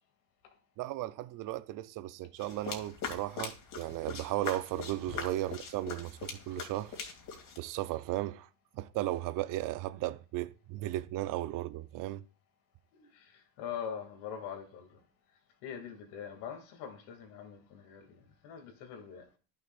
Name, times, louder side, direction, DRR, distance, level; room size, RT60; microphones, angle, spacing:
voice 1, 0.8-6.9 7.6-8.5 8.7-12.2, right 15 dB, 45° right, 0.7 m, -35 dB
sound 1, 2.4-7.6, left 5 dB, 45° left, 2.8 m, -42 dB
voice 2, 13.0-15.0 15.6-19.3, left 7 dB, 60° left, 2.6 m, -43 dB
14.0 x 6.6 x 2.5 m
hypercardioid pair, 75°, 45 cm